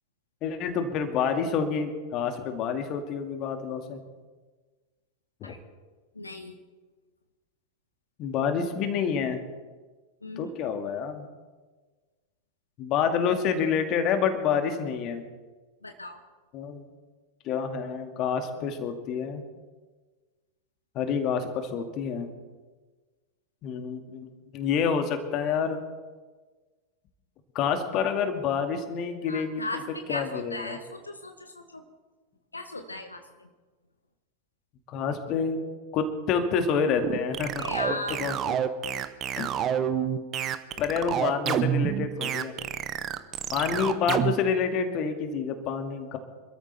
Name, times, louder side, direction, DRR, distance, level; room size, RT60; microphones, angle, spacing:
voice 1, 0.4-4.0 5.4-5.5 8.2-9.4 10.4-11.3 12.8-15.2 16.5-16.8 17.5-19.4 21.0-22.3 23.6-24.3 24.5-25.8 27.6-30.8 34.9-35.6 35.9-38.7 39.4-39.5 40.8-42.6 43.5-46.2, left 6 dB, 35° left, 6 dB, 2.0 m, -28 dB
voice 2, 6.2-6.6 10.2-10.5 15.8-16.2 29.3-31.8 32.5-33.2 37.6-38.1, left 2 dB, 80° left, 6 dB, 1.2 m, -36 dB
sound 1, 37.0-44.3, right 9 dB, 30° right, 1.0 m, -28 dB
26.5 x 13.5 x 3.4 m, 1.3 s
figure-of-eight pair, 90°, 0 cm